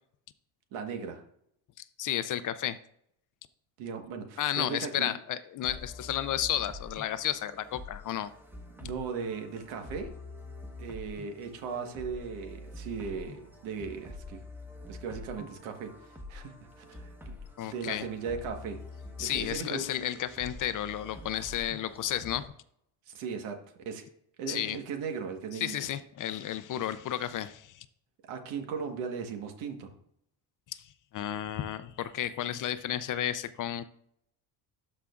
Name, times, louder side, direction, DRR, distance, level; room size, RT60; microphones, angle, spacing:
voice 1, 0.7-1.2 3.8-5.1 8.8-10.1 10.8-14.4 14.9-17.4 17.6-18.8 19.2-19.9 23.1-23.6 23.8-24.1 24.4-25.7 28.2-29.9, right 6 dB, 90° right, 5 dB, 1.5 m, -37 dB
voice 2, 2.0-2.8 4.4-8.3 17.6-18.1 19.2-22.5 24.5-24.8 25.5-27.9 30.7-33.9, left 11 dB, 45° left, 14 dB, 0.5 m, -32 dB
sound 1, 5.6-22.5, left 2 dB, 5° right, 1.2 m, -46 dB
12.5 x 5.0 x 2.4 m, 0.71 s
cardioid pair, 110°, 48 cm